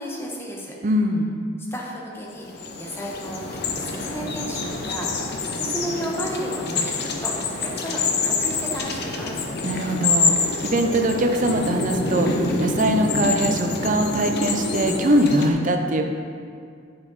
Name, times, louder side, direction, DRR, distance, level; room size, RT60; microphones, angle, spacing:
voice 1, 0.0-0.7 1.7-2.5 2.8-3.4 3.9-7.3 7.6-9.4, equal, 15° left, -3 dB, 1.2 m, -33 dB
voice 2, 0.8-1.3 9.6-16.1, right 1 dB, 45° right, 4 dB, 0.6 m, -22 dB
sound 1, 2.3-15.5, left 3 dB, 60° left, 0.8 m, -26 dB
8.9 x 5.5 x 4.0 m, 2.2 s
head